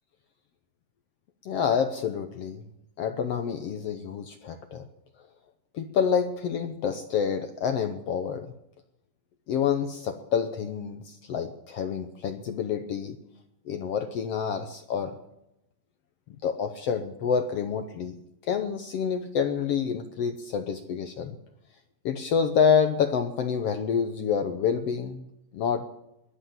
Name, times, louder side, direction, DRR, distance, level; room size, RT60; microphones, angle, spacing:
voice 1, 1.4-2.6 3.0-4.9 5.7-8.5 9.5-13.2 13.7-15.1 16.4-21.3 22.0-25.3 25.5-25.9, left 7 dB, 75° left, 8 dB, 1.4 m, -28 dB
21.5 x 8.0 x 7.4 m, 0.85 s
omnidirectional pair, 3.9 m